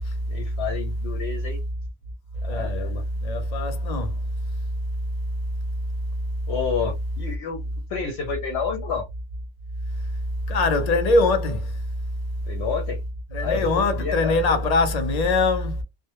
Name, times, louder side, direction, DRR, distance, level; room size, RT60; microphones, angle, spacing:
voice 1, 0.3-1.6 2.4-3.0 6.5-7.6 7.9-9.1 12.5-13.0 13.4-14.6, left 6 dB, 80° left, 0.9 m, -30 dB
voice 2, 2.5-2.9 3.2-4.2 10.5-11.7 13.3-15.8, left 2 dB, 45° left, 0.6 m, -22 dB
2.1 x 2.0 x 2.8 m
omnidirectional pair, 1.1 m